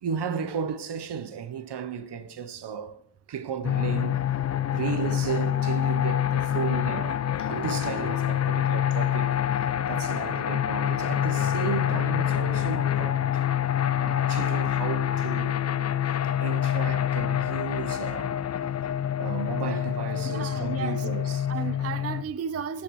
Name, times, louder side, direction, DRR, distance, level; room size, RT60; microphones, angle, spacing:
voice 1, 0.0-3.0 3.3-13.2 14.0-15.9 16.4-18.4 19.2-21.5, right 7 dB, 55° right, 0.9 m, -34 dB
sound 1, 3.6-22.2, left 10 dB, 35° left, 0.5 m, -26 dB
voice 2, 20.3-21.0 21.5-22.8, right 7 dB, 30° right, 0.5 m, -33 dB
13.5 x 8.6 x 3.1 m
supercardioid pair, 45°, 49 cm